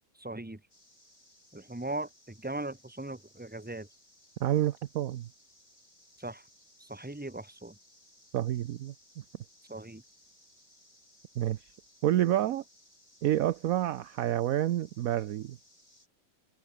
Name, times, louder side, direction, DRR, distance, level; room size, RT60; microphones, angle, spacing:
voice 1, 0.2-0.6 1.5-2.1 2.4-3.9 6.2-6.4 6.8-7.7 9.7-10.0, right 2 dB, 5° right, 1.7 m, -38 dB
sound 1, 0.7-16.1, left 1 dB, 15° left, 7.8 m, -62 dB
voice 2, 4.4-5.3 8.3-8.9 11.4-11.6 12.0-12.6 13.2-15.6, right 12 dB, 65° right, 0.8 m, -28 dB
open air
omnidirectional pair, 2.1 m